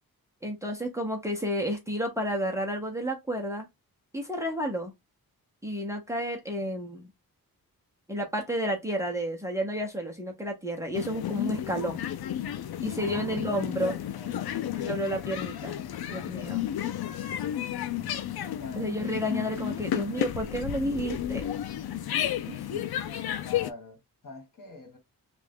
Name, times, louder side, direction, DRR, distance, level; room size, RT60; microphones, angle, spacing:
voice 1, 0.4-3.7 4.1-4.9 5.6-7.1 8.1-12.0 12.8-14.0 14.8-15.8 16.1-16.6 18.8-21.4 22.5-22.9, equal, 10° right, 0.7 m, -31 dB
sound 1, 10.9-23.7, left 11 dB, 90° left, 0.5 m, -32 dB
voice 2, 13.0-13.4 13.8-14.8 18.6-19.3 23.4-25.0, left 4 dB, 60° left, 1.4 m, -45 dB
3.3 x 2.4 x 3.4 m
wide cardioid pair, 155°, 36 cm